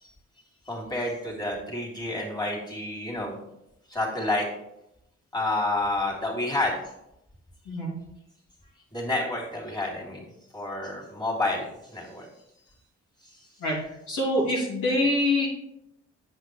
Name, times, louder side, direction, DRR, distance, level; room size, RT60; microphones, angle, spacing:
voice 1, 0.7-3.4 3.9-4.5 5.3-6.8 8.9-10.2 10.5-12.3 13.2-13.4, left 2 dB, 15° left, -4 dB, 3.1 m, -29 dB
voice 2, 13.6-15.5, left 1 dB, 70° left, -5 dB, 2.7 m, -25 dB
8.0 x 6.6 x 3.3 m, 0.83 s
hypercardioid pair, 45°, 32 cm